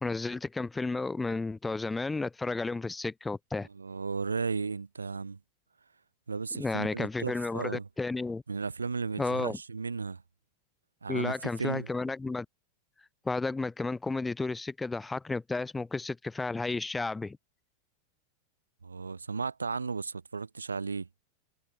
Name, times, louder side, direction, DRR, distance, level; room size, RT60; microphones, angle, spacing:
voice 1, 0.0-3.7 6.6-8.4 9.2-9.6 11.1-12.5 13.3-17.4, left 3 dB, 10° left, 0.4 m, -32 dB
voice 2, 3.7-5.4 6.3-7.9 8.5-10.2 11.0-11.9 18.8-21.1, right 4 dB, 75° right, 0.8 m, -35 dB
figure-of-eight pair, 90°, 0 cm